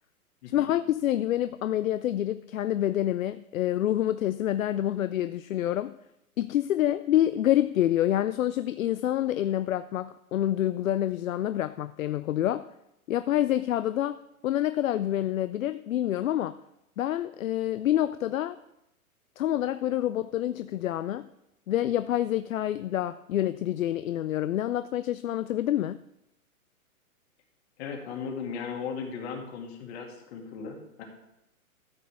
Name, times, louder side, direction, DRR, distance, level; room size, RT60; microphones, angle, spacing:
voice 1, 0.5-6.0 6.4-12.7 13.1-14.2 14.4-16.6 17.0-18.6 19.4-21.3 21.7-26.0, left 12 dB, 65° left, 13 dB, 0.5 m, -27 dB
voice 2, 27.8-31.0, left 6 dB, 45° left, 1 dB, 2.5 m, -37 dB
13.5 x 7.9 x 3.5 m, 0.85 s
hypercardioid pair, 130°, 44 cm